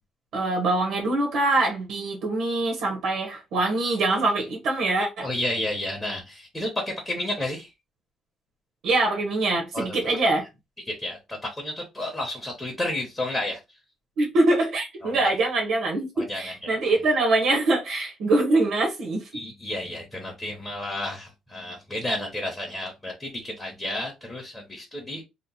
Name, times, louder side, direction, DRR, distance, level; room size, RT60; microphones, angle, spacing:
voice 1, 0.3-5.3 8.8-10.5 14.2-19.3, right 2 dB, 60° right, 0.8 m, -24 dB
voice 2, 5.2-7.7 9.7-9.8 10.9-13.6 15.0-15.4 16.2-16.8 19.3-25.2, left 1 dB, 10° left, 0.7 m, -31 dB
2.8 x 2.0 x 3.9 m
cardioid pair, 175°, 0 cm